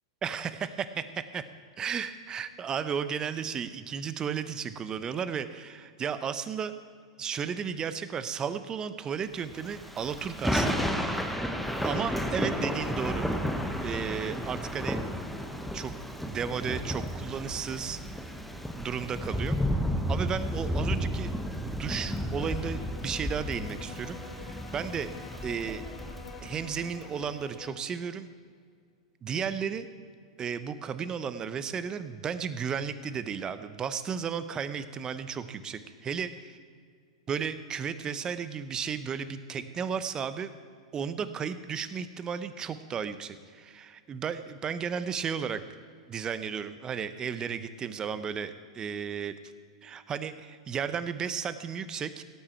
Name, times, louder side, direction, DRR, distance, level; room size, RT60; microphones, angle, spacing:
voice 1, 0.2-1.4 1.8-6.7 7.2-10.9 11.8-13.3 13.8-15.0 15.7-15.9 16.2-18.0 18.7-19.6 20.1-25.1 25.4-25.8 26.4-28.3 29.2-29.9 30.4-36.3 37.3-40.5 40.9-45.6 46.1-49.3 49.8-52.2, right 7 dB, 25° right, 12 dB, 0.8 m, -34 dB
Thunder / Rain, 9.6-27.1, equal, ahead, 1.1 m, -32 dB
sound 1, 22.3-27.9, left 6 dB, 45° left, 1.6 m, -47 dB
17.0 x 8.6 x 4.4 m, 2.1 s
hypercardioid pair, 105°, 3 cm